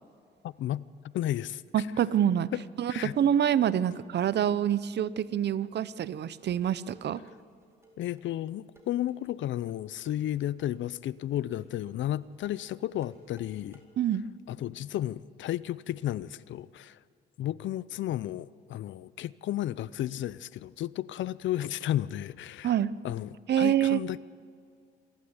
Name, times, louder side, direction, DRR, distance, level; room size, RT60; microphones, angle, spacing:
voice 1, 0.4-0.8 1.1-1.6 2.5-2.6 2.9-3.1 8.0-13.8 14.5-17.0 17.4-22.7 23.0-24.2, left 13 dB, 70° left, 0.6 m, -33 dB
voice 2, 1.7-2.5 2.8-7.2 14.0-14.3 22.6-22.9 23.5-24.0, right 10 dB, 60° right, 0.7 m, -26 dB
sound 1, 6.4-13.8, right 2 dB, 15° right, 4.2 m, -58 dB
27.0 x 12.0 x 9.7 m
cardioid pair, 90°, 20 cm